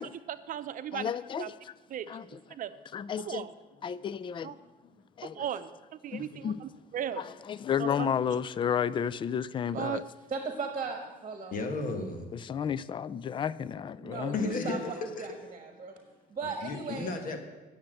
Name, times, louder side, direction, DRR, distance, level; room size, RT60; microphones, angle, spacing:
voice 1, 0.3-1.1 1.4-1.5 1.9-2.7 3.2-3.5 4.4-4.5 5.2-5.7 6.0-7.2 7.8-8.1 9.7-10.0, right 10 dB, 55° right, 0.7 m, -37 dB
voice 2, 0.9-1.7 2.1-2.3 2.9-3.5 3.8-4.6 5.2-5.5 6.1-6.6 7.2-10.0 12.3-14.4, left 8 dB, 30° left, 0.4 m, -32 dB
voice 3, 6.2-6.6 11.5-12.3 14.3-15.4 16.6-17.4, left 3 dB, 55° left, 1.5 m, -34 dB
voice 4, 10.3-11.6 14.0-14.8 15.2-15.9 16.3-17.4, right 4 dB, 35° right, 1.6 m, -37 dB
9.6 x 7.2 x 8.9 m
cardioid pair, 110°, 17 cm